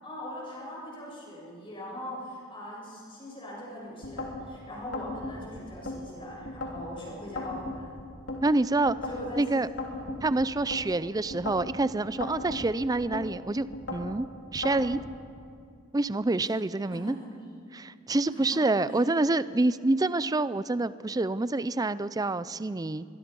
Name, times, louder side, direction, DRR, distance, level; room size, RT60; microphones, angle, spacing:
voice 1, 0.0-7.9 9.1-9.4 9.9-10.1 16.9-17.3 18.3-18.4 18.9-19.0, left 1 dB, 25° left, -5 dB, 7.8 m, -41 dB
sound 1, 4.0-4.4 4.9-6.0 6.5-6.9 7.4-8.4 8.9-9.3 9.8-10.8 11.3-11.7 12.2-13.3 13.7-14.1 14.6-15.1, left 2 dB, 55° left, 3.5 m, -36 dB
voice 2, 8.4-9.0 9.4-9.7 10.2-14.3 14.5-15.0 15.9-17.2 17.7-23.1, right 2 dB, 15° right, 16 dB, 0.4 m, -27 dB
24.0 x 21.5 x 5.4 m, 2.3 s
head